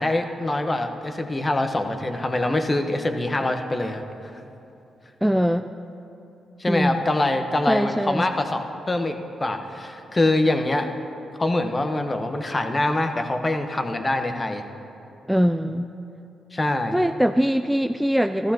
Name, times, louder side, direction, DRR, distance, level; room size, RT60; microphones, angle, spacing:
voice 1, 0.0-4.0 6.6-10.9 11.4-14.6 16.5-17.0, left 2 dB, 30° left, 6 dB, 1.0 m, -24 dB
voice 2, 5.2-5.7 6.7-7.0 7.7-8.4 15.3-15.9 16.9-18.5, equal, 5° right, 8 dB, 0.3 m, -22 dB
14.5 x 13.5 x 2.9 m, 2.8 s
supercardioid pair, 50°, 0 cm